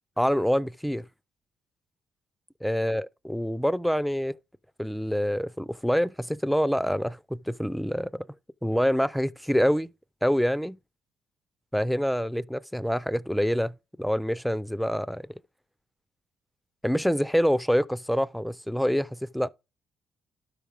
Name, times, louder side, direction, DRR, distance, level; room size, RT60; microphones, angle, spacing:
voice 1, 0.2-1.1 2.6-4.4 4.8-8.3 8.6-9.9 10.2-10.8 11.7-15.3 16.8-19.5, equal, ahead, 0.4 m, -26 dB
12.0 x 4.9 x 3.5 m
cardioid pair, 90°, 0 cm